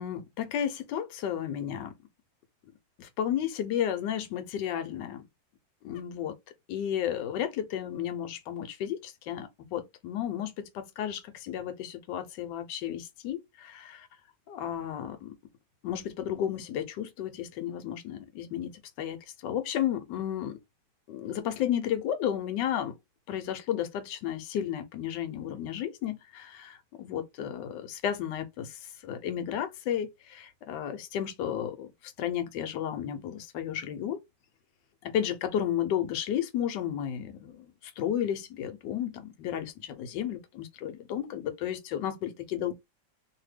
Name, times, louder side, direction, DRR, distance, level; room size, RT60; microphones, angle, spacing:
voice 1, 0.0-1.9 3.0-5.3 5.8-6.3 6.7-14.1 14.5-15.3 15.8-18.7 19.0-19.2 19.4-20.6 21.1-22.9 23.3-28.7 29.0-34.2 35.1-37.7 38.0-42.7, left 10 dB, 80° left, 1.3 m, -33 dB
2.8 x 2.6 x 3.1 m
omnidirectional pair, 1.9 m